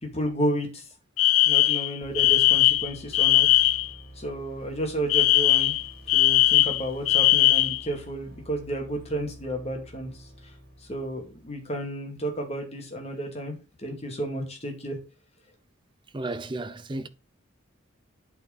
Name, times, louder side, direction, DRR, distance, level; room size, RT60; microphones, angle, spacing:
voice 1, 0.0-0.9 1.5-3.6 4.1-5.7 6.1-10.3 10.9-15.0, right 1 dB, 30° left, 2.3 m, -32 dB
Alarm, 1.2-3.9 5.1-7.8, left 15 dB, 85° left, 0.5 m, -20 dB
sound 1, 2.0-11.8, right 1 dB, 45° right, 3.2 m, -48 dB
voice 2, 16.1-17.1, right 2 dB, 20° right, 0.5 m, -33 dB
8.5 x 4.8 x 5.3 m
head